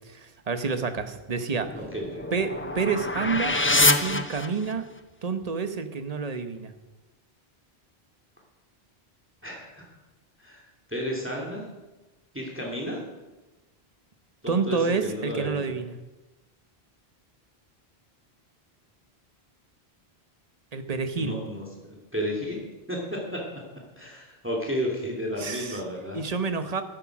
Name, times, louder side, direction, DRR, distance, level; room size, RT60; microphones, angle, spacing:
voice 1, 0.0-1.7 2.3-4.9 5.2-6.7 14.5-16.0 20.7-21.4 25.4-25.8 26.1-26.8, right 5 dB, 40° right, 9 dB, 1.1 m, -29 dB
sound 1, 1.6-5.0, left 2 dB, 15° left, 0.6 m, -26 dB
voice 2, 1.7-2.3 9.4-9.9 10.4-10.6 10.9-11.7 12.3-13.0 14.4-15.7 21.1-22.6 22.9-23.4 24.0-26.2, equal, 10° right, -1 dB, 2.7 m, -32 dB
13.0 x 11.5 x 6.0 m, 1.1 s
omnidirectional pair, 1.1 m